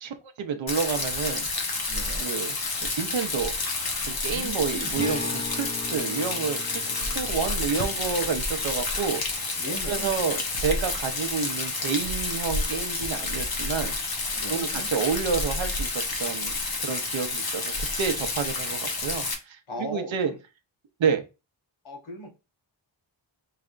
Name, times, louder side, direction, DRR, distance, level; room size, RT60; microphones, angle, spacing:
voice 1, 0.0-1.5 2.2-2.6 3.0-3.5 4.1-9.2 9.9-13.9 14.5-15.9 16.2-20.3 21.0-21.2, right 6 dB, 70° right, 6 dB, 0.8 m, -29 dB
Rain, 0.7-19.3, left 3 dB, 50° left, 0.9 m, -30 dB
voice 2, 1.9-2.2 4.3-4.9 9.6-10.1 14.3-14.9 19.7-20.4 21.8-22.3, equal, 80° left, 1 dB, 1.6 m, -38 dB
Acoustic guitar, 4.9-10.4, left 3 dB, 15° left, 0.6 m, -40 dB
4.8 x 3.3 x 2.4 m, 0.28 s
wide cardioid pair, 165°, 48 cm